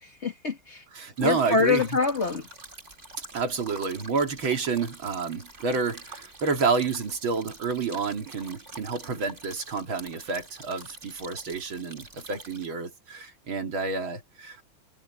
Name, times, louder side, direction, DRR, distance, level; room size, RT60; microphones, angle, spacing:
voice 1, 0.0-0.8 1.2-2.5, left 5 dB, 35° left, 1.8 m, -25 dB
voice 2, 0.9-1.8 3.3-14.6, right 4 dB, 75° right, 3.3 m, -29 dB
sound 1, 1.2-12.7, right 2 dB, 35° right, 4.3 m, -46 dB
omnidirectional pair, 2.2 m